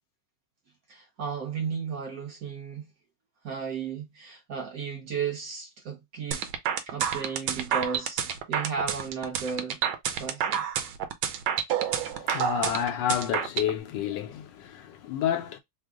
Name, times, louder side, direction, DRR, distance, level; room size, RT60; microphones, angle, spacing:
voice 1, 0.9-2.9 3.4-6.4 6.9-8.2 8.5-9.8 10.1-10.7, right 6 dB, 55° right, 1.1 m, -34 dB
sound 1, 6.3-13.7, right 9 dB, 75° right, 1.3 m, -28 dB
voice 2, 11.8-15.6, left 10 dB, 70° left, 1.1 m, -30 dB
3.5 x 2.0 x 3.5 m
omnidirectional pair, 2.4 m